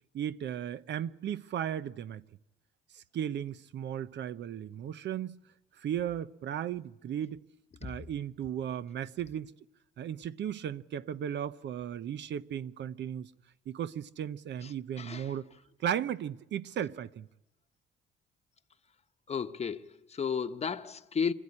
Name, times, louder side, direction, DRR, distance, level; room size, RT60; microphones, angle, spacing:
voice 1, 0.1-2.2 2.9-5.4 5.8-7.4 7.8-9.5 10.0-13.3 13.7-15.5 15.8-17.3, right 9 dB, 65° right, 0.7 m, -36 dB
voice 2, 14.6-15.4 19.3-21.3, left 6 dB, 35° left, 1.0 m, -34 dB
26.0 x 14.5 x 9.8 m
cardioid pair, 90°, 20 cm